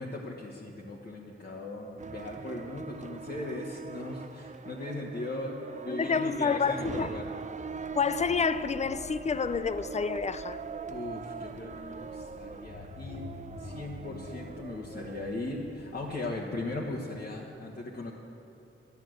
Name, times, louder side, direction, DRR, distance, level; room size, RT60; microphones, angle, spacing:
voice 1, 0.0-7.3 10.9-13.3 13.6-18.1, left 2 dB, 50° left, 1.3 m, -38 dB
sound 1, 2.0-15.3, right 5 dB, 35° right, 0.4 m, -42 dB
voice 2, 5.9-7.2 8.0-10.6, left 5 dB, 35° left, 0.4 m, -29 dB
sound 2, 7.6-16.4, left 3 dB, 80° left, 1.0 m, -49 dB
12.0 x 11.5 x 7.8 m
wide cardioid pair, 130°, 21 cm